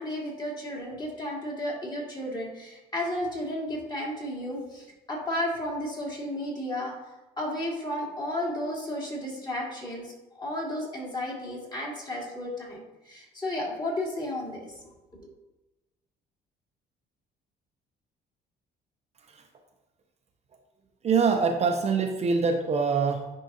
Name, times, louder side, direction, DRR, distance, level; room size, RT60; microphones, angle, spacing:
voice 1, 0.0-7.0 7.4-14.8, left 1 dB, 25° left, -3 dB, 2.0 m, -33 dB
voice 2, 21.0-23.3, right 5 dB, 40° right, 3 dB, 0.6 m, -24 dB
10.0 x 3.7 x 2.8 m, 1.1 s
cardioid pair, 110°, 17 cm